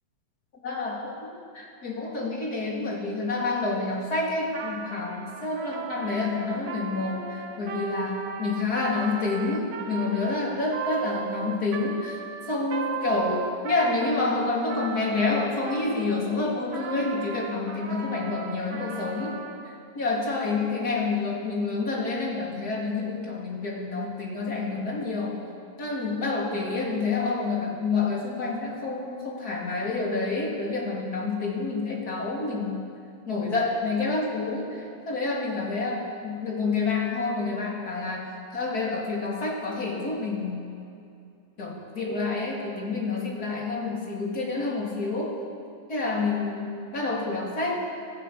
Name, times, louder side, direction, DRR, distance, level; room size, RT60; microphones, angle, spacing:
voice 1, 0.6-1.2 1.5-12.2 12.5-19.4 19.7-25.4 25.8-32.8 33.3-38.3 38.5-40.7 41.6-45.4 45.9-47.8, left 3 dB, 30° left, -2 dB, 3.8 m, -28 dB
Trumpet, 4.5-16.2 16.7-19.7, right 6 dB, 65° right, 2.4 m, -37 dB
26.5 x 14.5 x 7.0 m, 2.5 s
omnidirectional pair, 3.4 m